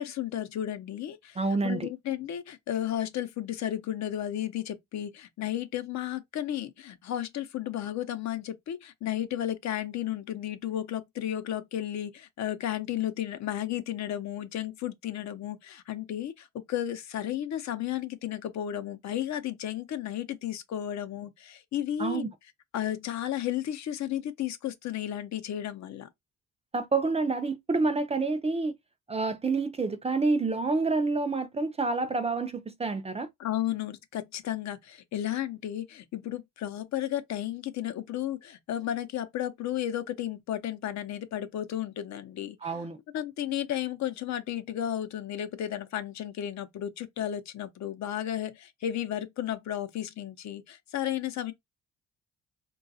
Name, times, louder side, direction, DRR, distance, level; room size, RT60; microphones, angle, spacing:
voice 1, 0.0-22.3 22.7-26.1 33.4-42.7 43.1-51.5, left 11 dB, 65° left, 0.6 m, -33 dB
voice 2, 1.4-1.9 22.0-22.3 26.7-28.7 29.1-33.3 42.6-43.0, right 3 dB, 20° right, 0.4 m, -28 dB
3.8 x 2.3 x 2.6 m
cardioid pair, 90°, 30 cm